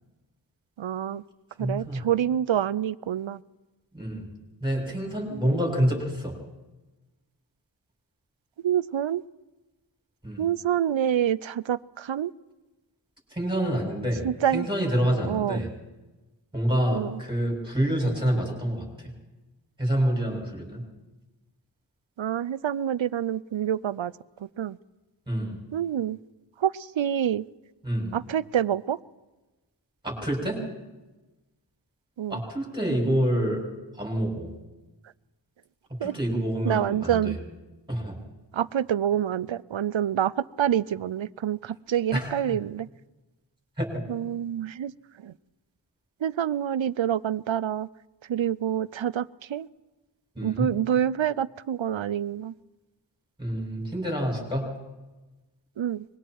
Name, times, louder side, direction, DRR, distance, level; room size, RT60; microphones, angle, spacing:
voice 1, 0.8-1.2 1.6-3.4 5.3-5.6 8.6-9.2 10.4-12.3 14.2-14.7 15.3-15.6 16.9-17.2 22.2-24.1 24.6-24.8 25.7-26.2 26.6-27.4 28.1-29.0 32.2-32.4 36.0-36.1 36.7-37.4 38.5-40.3 40.6-42.9 44.1-44.9 45.2-45.3 46.2-47.9 48.3-49.7 50.4-52.5 55.8-56.0, right 10 dB, 85° right, 19 dB, 0.6 m, -27 dB
voice 2, 1.6-2.1 3.9-4.3 4.6-6.4 10.2-10.5 13.3-14.3 14.5-15.7 16.5-18.9 19.8-20.8 25.3-25.6 27.8-28.1 30.0-30.6 32.3-33.6 34.0-34.5 36.0-37.4 37.9-38.2 42.1-42.3 43.8-43.9 50.4-50.7 53.4-54.7, right 1 dB, 10° right, 0 dB, 7.1 m, -27 dB
25.0 x 22.0 x 4.7 m, 1.1 s
wide cardioid pair, 55°, 45 cm